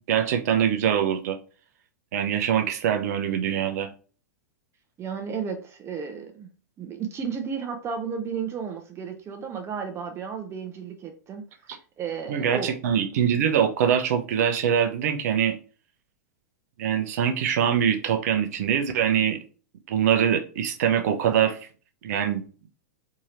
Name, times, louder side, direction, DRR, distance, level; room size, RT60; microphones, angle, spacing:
voice 1, 0.1-1.4 2.1-3.9 12.3-15.6 16.8-19.4 19.9-21.6 22.0-22.4, right 8 dB, 60° right, 6 dB, 0.7 m, -23 dB
voice 2, 5.0-6.5 6.8-11.4 12.0-13.0, right 6 dB, 25° right, 5 dB, 0.7 m, -33 dB
3.6 x 2.9 x 3.1 m, 0.37 s
hypercardioid pair, 100°, 10 cm